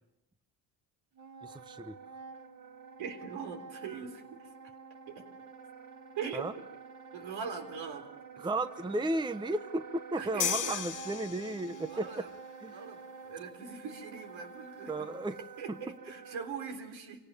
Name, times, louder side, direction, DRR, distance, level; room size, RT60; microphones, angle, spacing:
Wind instrument woodwind instrument, 1.1-16.6, right 5 dB, 50° right, 2.9 m, -49 dB
voice 1, 1.4-2.0 6.3-6.5 8.4-12.3 12.6-12.8 14.9-15.4 15.7-15.8, right 2 dB, 10° right, 11 dB, 0.8 m, -34 dB
voice 2, 3.0-4.5 5.1-5.2 6.2-6.5 7.1-8.1 8.4-8.5 10.2-10.8 11.8-12.3 12.7-15.1 15.6-17.2, right 6 dB, 70° right, 5 dB, 3.9 m, -41 dB
sound 1, 10.4-12.0, left 9 dB, 40° left, 0.8 m, -35 dB
26.0 x 17.5 x 7.0 m, 0.90 s
supercardioid pair, 90°, 48 cm